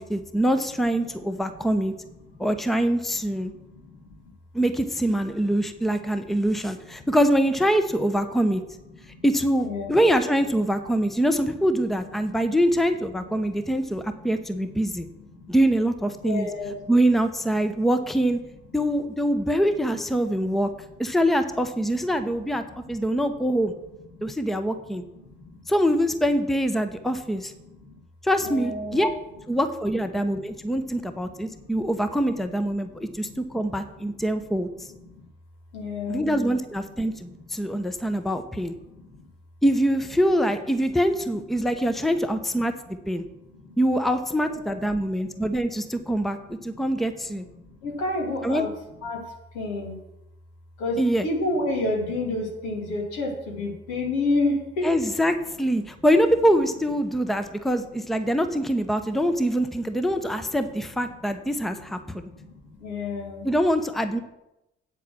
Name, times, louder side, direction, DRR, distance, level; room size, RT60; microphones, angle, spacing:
voice 1, 0.1-1.9 2.4-3.5 4.5-8.6 9.2-15.1 15.5-16.5 16.9-18.4 18.7-20.7 21.0-22.6 22.9-23.7 24.2-25.0 25.7-27.5 28.2-29.1 29.5-34.9 36.1-38.7 39.6-43.2 43.8-47.4 48.4-48.7 51.0-51.3 54.8-62.3 63.4-64.2, equal, ahead, 9 dB, 0.9 m, -24 dB
voice 2, 3.5-4.3 5.6-6.0 7.0-7.1 9.1-9.2 9.6-9.9 11.0-11.1 13.3-14.3 15.3-15.5 16.2-16.9 24.1-24.3 25.3-25.6 27.6-28.0 28.4-29.2 30.1-30.2 30.7-30.9 31.3-31.6 32.8-34.1 34.8-34.9 35.1-35.2 35.7-36.3 37.1-37.8 38.2-38.3 38.9-39.2 43.6-43.8 44.5-44.8 46.6-46.9 47.5-48.7 49.0-49.3 49.5-50.0 50.8-54.9 62.2-63.5, left 2 dB, 70° left, 0 dB, 2.4 m, -31 dB
8.7 x 8.3 x 6.3 m, 0.91 s
figure-of-eight pair, 40°, 30 cm